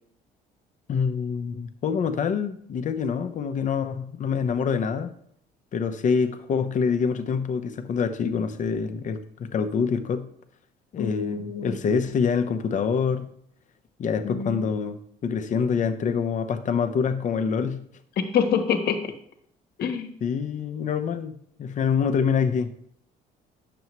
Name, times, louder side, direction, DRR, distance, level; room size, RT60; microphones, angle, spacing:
voice 1, 0.9-5.1 5.7-10.3 10.9-13.3 14.0-17.8 20.2-22.7, left 6 dB, 50° left, 9 dB, 0.8 m, -26 dB
voice 2, 11.0-11.8 14.2-14.7 18.2-19.1 19.8-20.1, left 7 dB, 70° left, 7 dB, 1.2 m, -26 dB
9.3 x 7.0 x 3.0 m, 0.65 s
cardioid pair, 110°, 17 cm